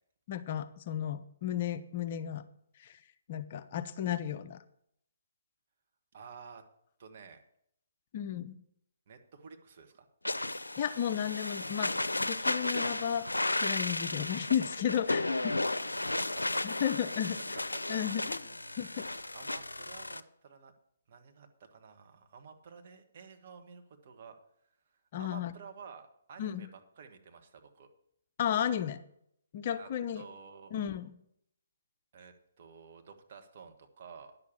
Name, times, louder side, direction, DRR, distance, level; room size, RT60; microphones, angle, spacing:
voice 1, 0.3-2.4 2.8-3.0 3.3-4.6 8.1-8.6 10.8-13.3 13.6-15.2 16.6-17.4 17.9-18.4 18.8-19.0 25.1-25.5 26.4-26.7 28.4-29.0 29.5-30.2 30.7-31.1, left 9 dB, 40° left, 11 dB, 0.7 m, -33 dB
voice 2, 6.1-6.6 7.0-7.4 9.1-10.1 15.1-16.9 17.7-17.8 18.7-20.7 21.1-24.4 25.2-27.9 29.8-29.9 30.1-30.7 32.1-34.4, right 6 dB, 45° right, 5 dB, 1.5 m, -52 dB
sound 1, 10.2-20.2, left 2 dB, 85° left, 0.5 m, -34 dB
10.5 x 6.8 x 7.3 m, 0.73 s
figure-of-eight pair, 135°, 0 cm